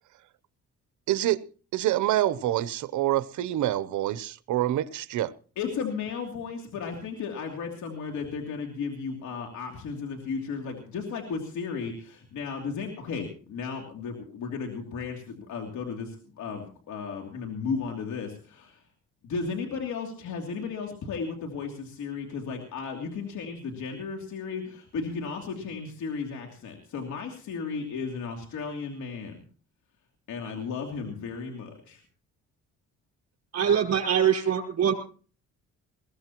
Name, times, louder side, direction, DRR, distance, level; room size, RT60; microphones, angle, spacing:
voice 1, 1.1-1.4 1.7-5.3, right 13 dB, 75° right, 0.8 m, -26 dB
voice 2, 5.6-18.8 19.2-29.4 30.3-32.0, left 5 dB, 75° left, 3.0 m, -34 dB
voice 3, 33.5-34.9, right 8 dB, 60° right, 5.3 m, -23 dB
21.5 x 16.5 x 3.0 m
cardioid pair, 90°, 30 cm